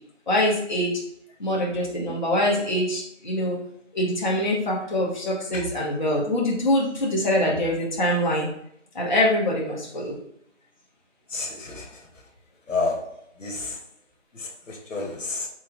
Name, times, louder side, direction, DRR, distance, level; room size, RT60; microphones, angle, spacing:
voice 1, 0.3-1.0 1.4-3.6 3.9-8.5 8.9-10.2, left 1 dB, 40° left, -4 dB, 0.7 m, -24 dB
voice 2, 11.3-11.9 12.7-13.1 13.4-13.8 14.3-15.5, left 3 dB, 85° left, 1 dB, 1.0 m, -30 dB
3.8 x 3.0 x 2.3 m, 0.73 s
figure-of-eight pair, 170°, 38 cm